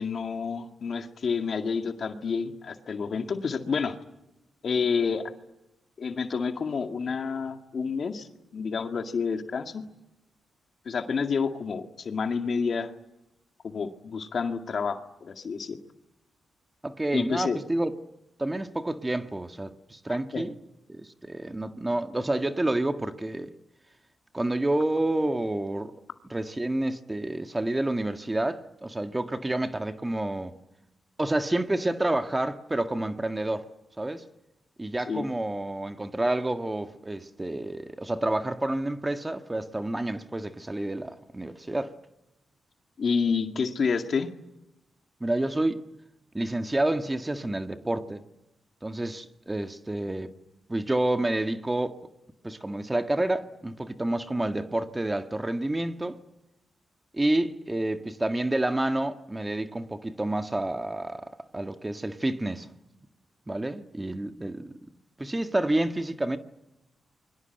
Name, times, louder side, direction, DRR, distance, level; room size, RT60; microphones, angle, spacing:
voice 1, 0.0-4.0 4.6-5.2 6.0-8.3 8.5-9.8 10.9-12.9 13.6-15.8 17.1-17.6 20.1-20.4 35.1-35.3 43.0-44.3, left 5 dB, 60° left, 2.0 m, -29 dB
voice 2, 16.8-17.9 18.4-20.6 20.9-23.5 24.3-26.0 26.3-30.6 31.2-33.7 34.0-34.2 34.8-41.9 45.2-45.9 46.3-48.2 48.8-50.4 50.7-52.0 52.4-56.2 57.1-62.7 63.5-64.8 65.2-66.4, right 1 dB, 20° right, 1.8 m, -29 dB
29.0 x 23.0 x 8.0 m
supercardioid pair, 50°, 0 cm